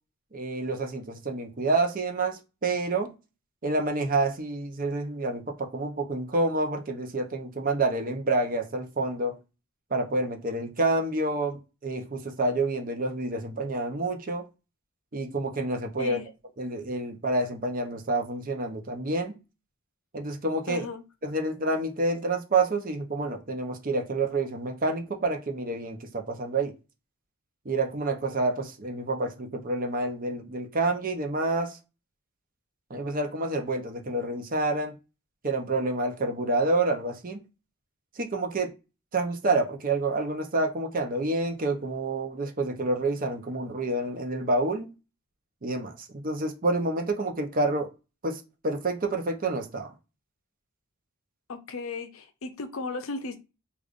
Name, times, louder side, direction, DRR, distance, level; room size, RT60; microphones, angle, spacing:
voice 1, 0.3-3.1 3.6-9.4 9.9-14.4 15.1-16.2 16.6-19.4 20.1-20.9 21.2-26.7 27.6-31.8 32.9-34.9 35.4-37.4 38.2-38.7 39.1-44.9 45.6-47.9 48.2-49.9, right 2 dB, 40° right, 0.7 m, -28 dB
voice 2, 16.0-16.3 20.7-21.0 51.5-53.4, left 3 dB, 65° left, 0.6 m, -35 dB
5.0 x 2.5 x 2.4 m
head